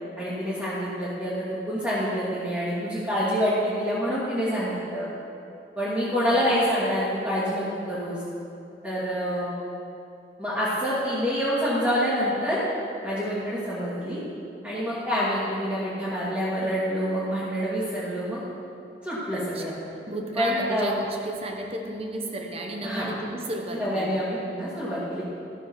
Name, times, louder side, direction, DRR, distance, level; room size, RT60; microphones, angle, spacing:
voice 1, 0.2-5.1 5.8-8.2 8.8-9.5 10.4-12.6 13.0-14.2 14.6-18.4 19.0-19.7 20.4-20.9 22.8-23.1 23.8-25.2, equal, 10° right, -11 dB, 2.1 m, -27 dB
voice 2, 6.3-6.7 19.3-19.6 20.1-24.2, right 1 dB, 35° right, 2 dB, 1.1 m, -33 dB
13.5 x 6.4 x 6.2 m, 2.7 s
head